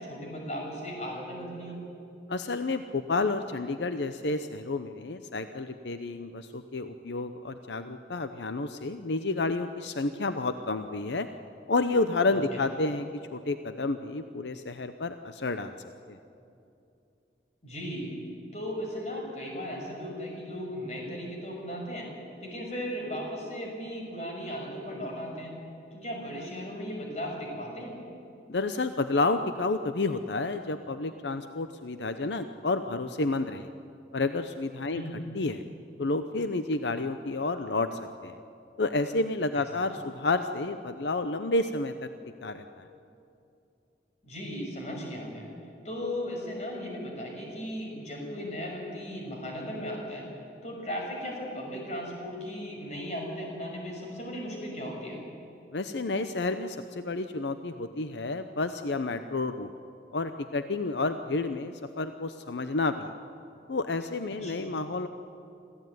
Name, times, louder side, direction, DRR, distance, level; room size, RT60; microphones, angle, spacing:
voice 1, 0.0-1.8 12.3-12.6 17.6-18.1 18.5-22.1 22.4-25.6 25.9-27.9 34.9-35.2 39.5-39.9 44.2-45.5 45.8-50.3 50.6-55.2 64.4-64.7, equal, 40° left, -1 dB, 6.2 m, -36 dB
voice 2, 2.3-11.3 11.7-15.7 16.1-16.2 28.5-33.7 34.1-35.0 35.3-35.6 36.0-38.4 38.8-41.9 42.4-42.8 55.7-59.7 60.1-63.1 63.7-65.1, left 3 dB, 85° left, 9 dB, 0.8 m, -30 dB
26.0 x 15.5 x 9.4 m, 2.6 s
head